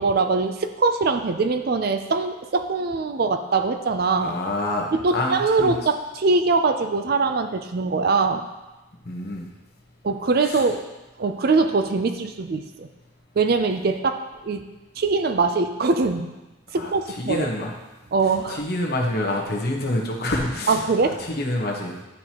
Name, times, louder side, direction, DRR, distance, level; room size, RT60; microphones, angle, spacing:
voice 1, 0.0-4.3 4.9-8.5 10.0-10.8 11.2-12.9 13.4-14.6 15.0-16.3 16.7-17.5 18.1-18.6 20.7-21.2, right 4 dB, 50° right, 8 dB, 0.4 m, -22 dB
voice 2, 4.2-5.8 9.0-9.5 10.4-10.6 16.8-16.9 17.2-17.7 18.5-22.0, left 1 dB, 50° left, -1 dB, 1.2 m, -27 dB
11.5 x 4.5 x 3.0 m, 1.1 s
head